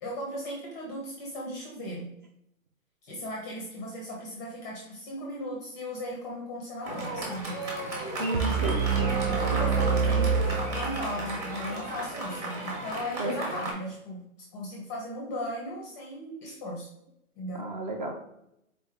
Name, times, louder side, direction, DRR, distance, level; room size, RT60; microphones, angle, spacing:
voice 1, 0.0-2.1 3.0-7.6 9.3-14.2 14.5-16.9 17.4-17.6, left 1 dB, 15° left, -2 dB, 0.5 m, -37 dB
Fireworks, 6.8-13.7, right 1 dB, 15° right, 0.9 m, -35 dB
voice 2, 8.2-9.1 13.2-13.6 17.6-18.2, right 2 dB, 35° right, 3 dB, 0.6 m, -33 dB
sound 1, 8.3-11.4, right 6 dB, 80° right, 0.7 m, -26 dB
4.0 x 3.4 x 3.5 m, 0.79 s
hypercardioid pair, 150°, 41 cm